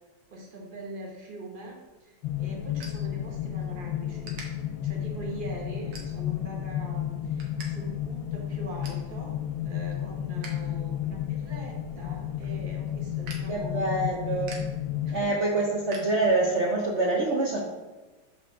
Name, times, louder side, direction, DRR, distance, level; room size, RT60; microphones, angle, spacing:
voice 1, 0.3-4.4 4.8-9.4 9.6-14.1 15.0-15.3, right 2 dB, 35° right, 0 dB, 1.0 m, -42 dB
sound 1, 1.7-3.7 4.2-4.5 5.0-5.3 5.9-6.5 6.9-7.7 8.0-8.1 8.4-9.1 9.5-10.6 10.9-16.7, right 3 dB, 85° right, 2.0 m, -47 dB
sound 2, 2.2-15.2, left 10 dB, 75° left, 1.3 m, -32 dB
voice 2, 13.5-14.6 15.1-17.6, right 2 dB, 55° right, -3 dB, 0.8 m, -26 dB
6.4 x 4.6 x 3.7 m, 1.2 s
omnidirectional pair, 2.2 m